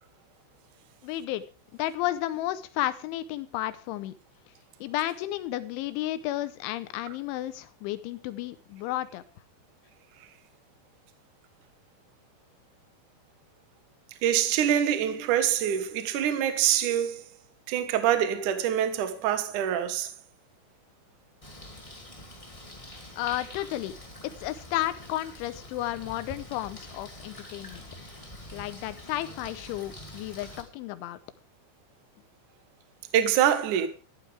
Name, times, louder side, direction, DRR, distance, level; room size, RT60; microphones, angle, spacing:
voice 1, 1.0-1.4 1.7-4.1 4.8-9.2 23.2-24.0 24.2-27.9 28.5-31.2, left 14 dB, 80° left, 3.1 m, -32 dB
voice 2, 14.2-17.2 17.7-20.1 33.1-33.9, right 10 dB, 70° right, 1.9 m, -25 dB
Bird, 21.4-30.6, left 1 dB, 65° left, 0.3 m, -45 dB
13.5 x 12.5 x 3.4 m
omnidirectional pair, 5.8 m